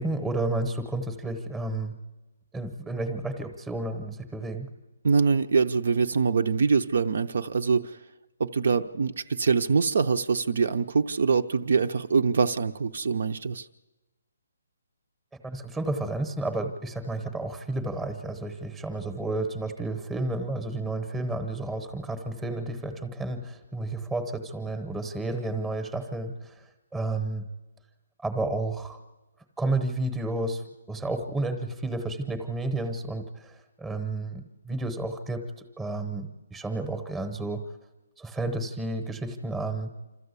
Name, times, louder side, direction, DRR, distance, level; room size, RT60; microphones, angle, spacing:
voice 1, 0.0-1.9 2.5-4.7 15.4-26.5 26.9-27.5 28.2-29.0 29.6-30.6 30.9-37.6 38.2-39.9, right 2 dB, 5° right, 8 dB, 0.9 m, -31 dB
voice 2, 5.0-8.0 8.4-13.7, right 5 dB, 55° right, 8 dB, 0.6 m, -24 dB
26.5 x 13.5 x 8.2 m, 1.1 s
hypercardioid pair, 175°, 0 cm